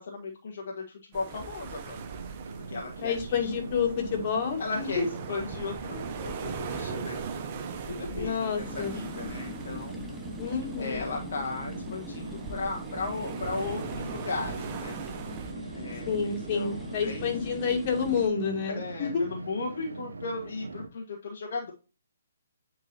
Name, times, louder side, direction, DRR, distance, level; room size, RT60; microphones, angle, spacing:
voice 1, 0.0-2.0 2.7-3.5 4.6-7.2 7.9-10.2 10.8-15.0 15.7-17.3 18.8-21.7, left 3 dB, 55° left, 0 dB, 1.5 m, -36 dB
sound 1, 1.1-15.5, right 6 dB, 35° right, 1.0 m, -40 dB
sound 2, 1.9-20.9, right 3 dB, 70° right, 1.0 m, -42 dB
voice 2, 3.0-5.1 8.2-9.0 10.4-11.1 16.1-19.3, left 6 dB, 40° left, 1 dB, 2.3 m, -29 dB
sound 3, 8.6-18.3, left 1 dB, ahead, 1.0 m, -42 dB
9.4 x 4.8 x 2.7 m, 0.33 s
figure-of-eight pair, 130°, 0 cm